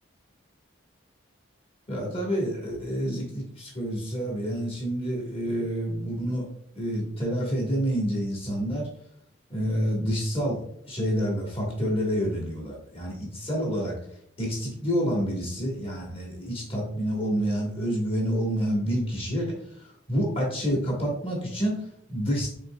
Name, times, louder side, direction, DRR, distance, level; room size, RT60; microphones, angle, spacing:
voice 1, 1.9-6.4 6.7-8.9 9.5-13.9 14.4-19.5 19.8-22.5, equal, 30° left, -2 dB, 1.2 m, -28 dB
5.2 x 3.7 x 2.2 m, 0.66 s
head